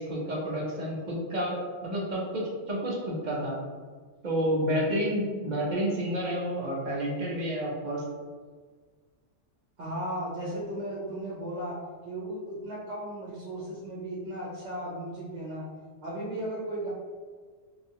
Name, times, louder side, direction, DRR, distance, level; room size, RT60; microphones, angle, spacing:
voice 1, 0.0-3.6 4.2-8.0, equal, 45° right, -3 dB, 0.7 m, -30 dB
voice 2, 9.8-11.8 12.0-15.7 16.0-16.9, right 1 dB, 75° right, -6 dB, 1.1 m, -35 dB
2.8 x 2.5 x 2.7 m, 1.5 s
omnidirectional pair, 1.3 m